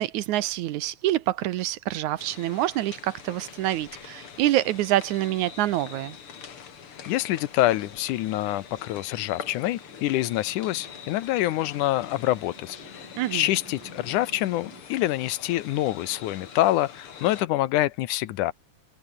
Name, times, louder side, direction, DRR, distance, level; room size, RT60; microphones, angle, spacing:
voice 1, 0.0-6.2 13.2-13.5, right 14 dB, 75° right, 2.1 m, -26 dB
sound 1, 2.2-17.4, left 7 dB, 45° left, 2.7 m, -44 dB
sound 2, 7.0-14.8, right 2 dB, 40° right, 7.8 m, -52 dB
voice 2, 7.1-18.5, left 15 dB, 80° left, 2.2 m, -26 dB
omnidirectional pair, 3.7 m